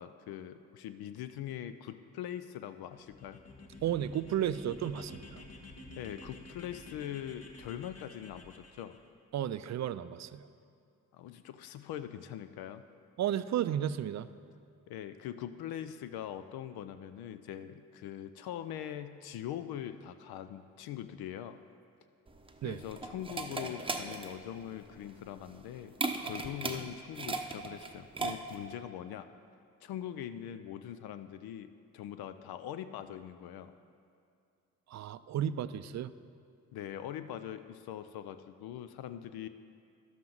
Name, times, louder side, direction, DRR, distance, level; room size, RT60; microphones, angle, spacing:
voice 1, 0.0-3.4 6.0-9.0 11.1-12.8 14.9-21.6 22.6-25.9 26.2-29.3 29.8-33.7 36.7-39.5, left 10 dB, 75° left, 11 dB, 0.5 m, -42 dB
sound 1, 2.9-9.0, left 2 dB, 40° left, 1.4 m, -51 dB
voice 2, 3.8-5.4 9.3-10.5 13.2-14.3 22.6-22.8 34.9-36.1, right 10 dB, 50° right, 14 dB, 0.4 m, -33 dB
sound 2, 22.3-28.7, right 3 dB, 15° right, 0.7 m, -38 dB
11.5 x 7.3 x 3.9 m, 2.5 s
supercardioid pair, 55°, 38 cm